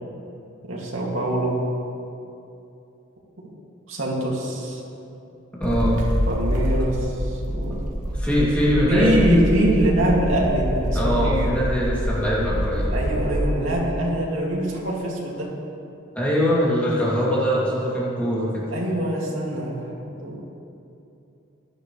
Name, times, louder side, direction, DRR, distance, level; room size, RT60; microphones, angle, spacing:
voice 1, 0.6-1.6 3.9-4.8 6.3-7.8 8.9-11.6 12.9-15.5 18.7-20.4, right 1 dB, 70° right, -3 dB, 2.4 m, -24 dB
voice 2, 5.6-6.0 8.1-9.5 10.9-12.9 16.1-18.6, equal, 5° left, -8 dB, 2.7 m, -22 dB
sound 1, 5.6-13.4, equal, 40° right, 1.7 m, -26 dB
17.0 x 11.5 x 3.3 m, 2.8 s
head